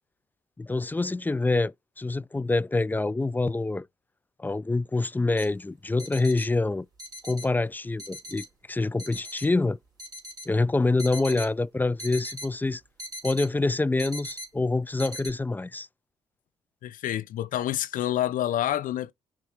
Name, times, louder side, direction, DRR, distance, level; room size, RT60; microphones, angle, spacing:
voice 1, 0.6-3.9 4.4-6.9 7.2-9.8 10.5-12.8 13.2-15.9, left 3 dB, 10° left, 0.3 m, -26 dB
sound 1, 5.4-5.5 6.0-6.5 7.0-7.5 8.0-8.5 9.0-9.5 10.0-10.5 11.0-11.5 12.0-12.5 13.0-13.5 14.0-14.5 15.0-15.3, equal, 25° right, 3.1 m, -39 dB
voice 2, 16.8-19.1, left 12 dB, 65° left, 0.5 m, -28 dB
5.8 x 2.9 x 2.9 m
hypercardioid pair, 45°, 15 cm